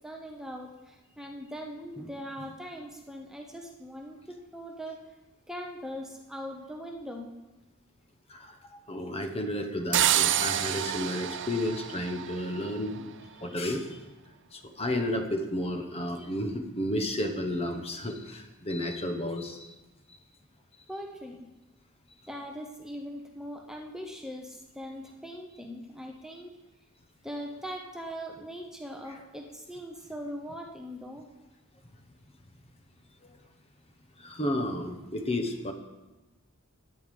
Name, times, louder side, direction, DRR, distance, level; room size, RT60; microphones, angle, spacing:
voice 1, 0.0-5.0 5.5-7.3 20.9-21.5 22.3-26.5 27.2-31.3, equal, ahead, 1 dB, 0.8 m, -41 dB
voice 2, 8.3-13.0 13.4-14.0 14.5-19.7 20.1-20.2 33.2-33.4 34.2-35.7, left 1 dB, 30° left, 6 dB, 1.0 m, -32 dB
sound 1, 9.9-12.8, right 11 dB, 55° right, 0.5 m, -28 dB
10.5 x 9.4 x 5.3 m, 1.1 s
head